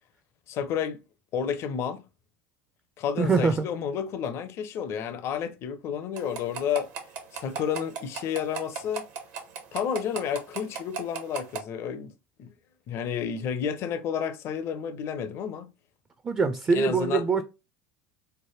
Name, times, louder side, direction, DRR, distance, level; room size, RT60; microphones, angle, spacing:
voice 1, 0.5-1.0 1.3-2.0 3.0-6.9 7.3-9.0 9.7-12.1 12.4-12.5 12.9-15.7 16.7-17.2, left 8 dB, 50° left, 0.5 m, -31 dB
voice 2, 3.2-3.7 16.2-17.4, right 4 dB, 20° right, 0.4 m, -23 dB
sound 1, 6.2-11.6, right 6 dB, 60° right, 0.8 m, -34 dB
3.2 x 2.1 x 3.1 m
hypercardioid pair, 85°, 6 cm